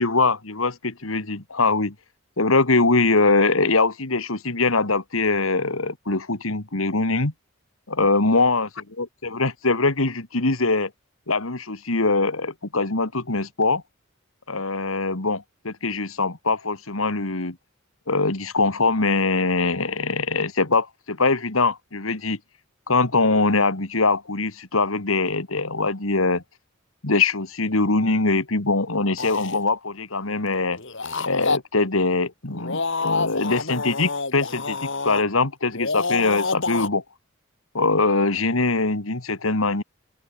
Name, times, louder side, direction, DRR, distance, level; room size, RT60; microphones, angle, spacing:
voice 1, 0.0-1.9 2.4-7.3 7.9-8.7 9.0-10.9 11.3-13.8 14.5-17.6 18.1-22.4 22.9-26.4 27.0-30.8 31.2-37.0 37.7-39.8, left 3 dB, 85° left, 2.5 m, -22 dB
sound 1, 29.2-29.6 30.8-31.6 32.5-35.2 35.7-36.9, left 3 dB, 65° left, 5.8 m, -27 dB
open air
head